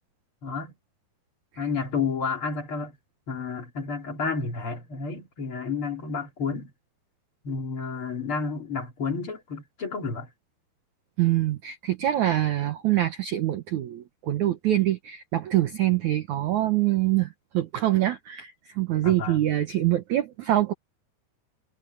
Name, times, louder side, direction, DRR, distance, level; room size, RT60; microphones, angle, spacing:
voice 1, 0.4-0.7 1.6-3.0 3.3-6.7 7.4-10.3 19.0-19.4, left 5 dB, 35° left, 3.6 m, -31 dB
voice 2, 11.2-17.3 17.5-20.7, right 14 dB, 65° right, 1.9 m, -25 dB
omnidirectional pair, 4.6 m